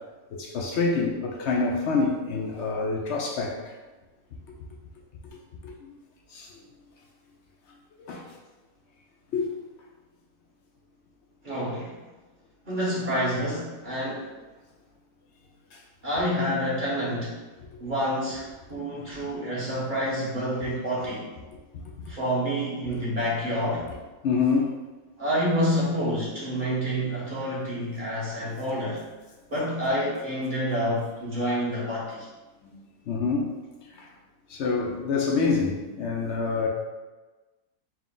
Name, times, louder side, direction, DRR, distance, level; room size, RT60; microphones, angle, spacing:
voice 1, 0.3-3.7 5.6-6.0 6.3-6.5 8.1-8.2 9.3-9.5 19.1-19.2 24.2-24.7 32.6-32.7 33.1-33.5 34.0-34.1 34.5-36.7, left 4 dB, 70° left, -1 dB, 0.7 m, -26 dB
voice 2, 11.4-12.0 12.7-14.3 16.0-17.4 17.8-21.2 22.1-23.9 25.2-29.0 29.5-32.3, equal, 35° right, -8 dB, 1.2 m, -28 dB
4.5 x 2.2 x 3.6 m, 1.2 s
omnidirectional pair, 1.6 m